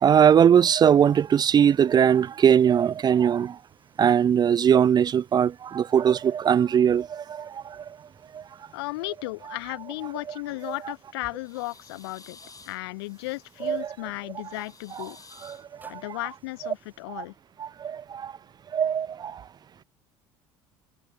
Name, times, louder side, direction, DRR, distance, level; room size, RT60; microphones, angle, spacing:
voice 1, 0.0-3.6 4.0-7.8 8.3-8.4 10.7-10.8 13.6-13.9 15.4-16.0 17.2-17.3 17.6-18.3 18.7-19.4, right 8 dB, 30° right, 0.4 m, -21 dB
sound 1, 1.0-17.0, right 2 dB, 15° right, 7.5 m, -64 dB
voice 2, 8.7-12.4 12.7-15.2 15.9-17.3, left 22 dB, 80° left, 0.7 m, -35 dB
sound 2, 10.6-11.0 11.4-13.9 14.4-15.6, left 5 dB, 25° left, 2.6 m, -52 dB
hypercardioid pair, 75°, 13 cm